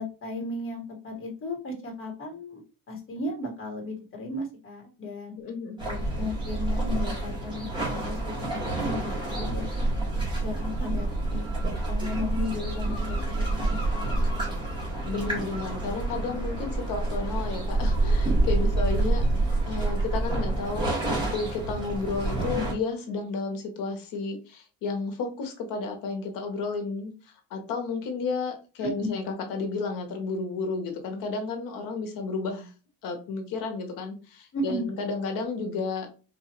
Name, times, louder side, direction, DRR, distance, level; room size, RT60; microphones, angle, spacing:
voice 1, 0.0-2.6 2.9-5.3 5.8-10.1 10.4-11.5 11.9-14.6 16.3-16.4 22.3-22.6 28.8-29.1 34.5-34.8, left 2 dB, 40° left, 0 dB, 1.5 m, -35 dB
voice 2, 5.4-5.8 15.0-32.7 33.0-36.1, left 4 dB, 70° left, 4 dB, 1.2 m, -32 dB
sound 1, 5.8-22.7, right 2 dB, 15° right, 1.7 m, -28 dB
4.2 x 2.7 x 3.0 m, 0.34 s
cardioid pair, 125°, 34 cm